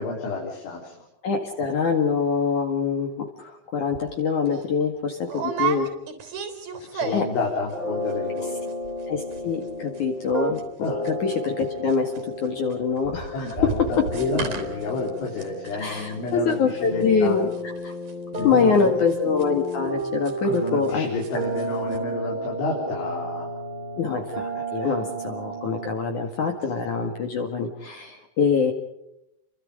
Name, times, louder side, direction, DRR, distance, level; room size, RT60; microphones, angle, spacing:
voice 1, 0.0-1.0 6.8-8.7 10.8-11.1 13.3-17.4 18.4-18.9 20.4-23.5 24.6-24.9, left 3 dB, 75° left, -1 dB, 6.4 m, -30 dB
voice 2, 1.2-5.9 7.1-7.3 9.1-10.6 11.0-12.1 12.4-14.0 15.8-17.5 17.8-17.9 18.4-21.1 24.0-28.7, left 5 dB, 50° left, 4 dB, 2.7 m, -24 dB
sound 1, 3.9-4.1 4.5-4.6 5.3-7.5 7.7-8.1 8.4-8.5 8.7-9.1 9.3-11.6 11.9-20.9 21.2-21.7 21.9-22.0, right 6 dB, 50° right, 4.7 m, -34 dB
sound 2, 7.7-25.9, right 1 dB, 10° right, 2.4 m, -32 dB
29.5 x 24.0 x 5.1 m, 0.79 s
omnidirectional pair, 5.5 m